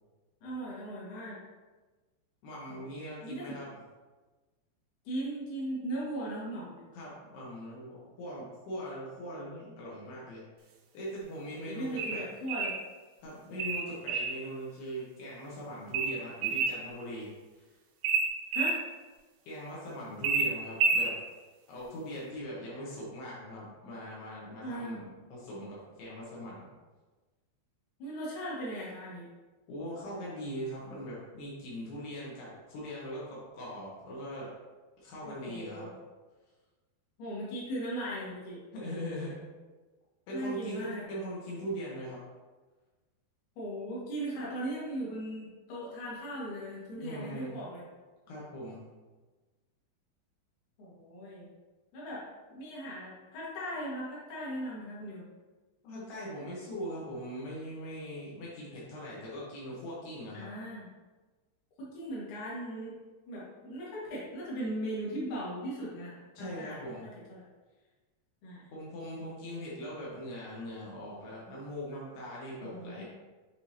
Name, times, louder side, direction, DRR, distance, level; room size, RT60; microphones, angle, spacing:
voice 1, 0.4-1.4 2.7-2.9 3.2-3.5 5.0-6.8 11.5-12.7 18.5-18.8 24.6-25.0 28.0-29.3 35.2-35.9 37.2-38.6 40.3-41.0 43.6-47.8 50.8-51.5 51.9-55.2 60.3-60.9 61.8-62.9 63.3-67.4 68.4-68.7 72.6-73.0, right 1 dB, 55° left, -7 dB, 2.7 m, -38 dB
voice 2, 2.4-3.7 6.9-12.3 13.2-17.8 19.4-21.1 21.7-26.7 29.7-34.5 35.0-35.9 38.7-39.4 40.3-42.2 47.0-47.6 48.3-48.9 55.8-60.5 66.4-67.1 68.7-73.0, equal, 75° left, -6 dB, 3.2 m, -41 dB
sound 1, 12.0-12.8 13.6-14.4 15.9-16.8 18.0-18.8 20.2-21.1, right 4 dB, 90° right, 2.8 m, -29 dB
9.0 x 3.8 x 2.8 m, 1.3 s
omnidirectional pair, 5.0 m